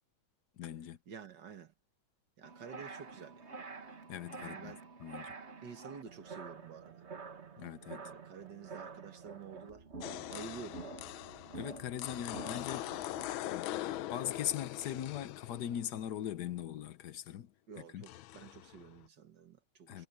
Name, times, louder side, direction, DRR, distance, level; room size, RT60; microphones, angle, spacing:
voice 1, 0.6-1.0 4.1-5.3 7.6-8.0 11.5-13.2 13.4-17.5 17.8-18.0 19.9-20.1, left 10 dB, 60° left, 1.3 m, -40 dB
voice 2, 1.1-1.7 2.4-3.4 4.4-4.8 5.6-7.0 8.0-9.8 10.3-11.0 17.7-20.1, right 6 dB, 60° right, 2.2 m, -50 dB
sound 1, 2.4-13.3, right 4 dB, 35° right, 1.6 m, -48 dB
sound 2, 10.0-16.4 18.0-19.1, left 14 dB, 85° left, 1.5 m, -42 dB
omnidirectional pair, 2.2 m